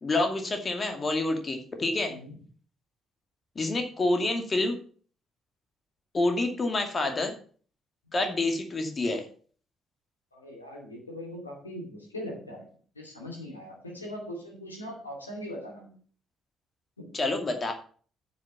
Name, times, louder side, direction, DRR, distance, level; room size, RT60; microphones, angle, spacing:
voice 1, 0.0-2.2 3.6-4.8 6.1-7.4 8.1-9.3 17.1-17.7, left 2 dB, 35° left, 5 dB, 2.4 m, -28 dB
voice 2, 10.3-12.7 12.9-15.9 17.0-17.1, equal, 90° left, -1 dB, 2.6 m, -40 dB
9.6 x 6.1 x 6.8 m, 0.44 s
figure-of-eight pair, 45°, 0 cm